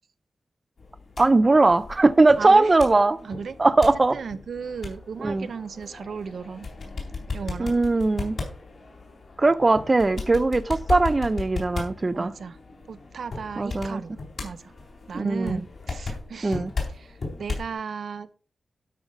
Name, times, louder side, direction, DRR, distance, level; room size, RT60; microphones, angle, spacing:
sound 1, 0.8-17.7, left 3 dB, 60° left, 3.6 m, -36 dB
voice 1, 1.2-3.2 3.6-4.2 5.2-5.5 7.6-8.4 9.4-12.3 13.6-14.0 15.1-15.6 16.4-16.7, right 3 dB, 25° right, 0.5 m, -20 dB
voice 2, 2.4-2.7 3.2-3.6 4.1-6.7 7.3-7.7 12.1-12.6 12.9-14.2 14.4-14.7 15.1-16.6 16.9-18.3, right 6 dB, 75° right, 0.7 m, -35 dB
12.0 x 5.6 x 5.0 m
wide cardioid pair, 160°, 0 cm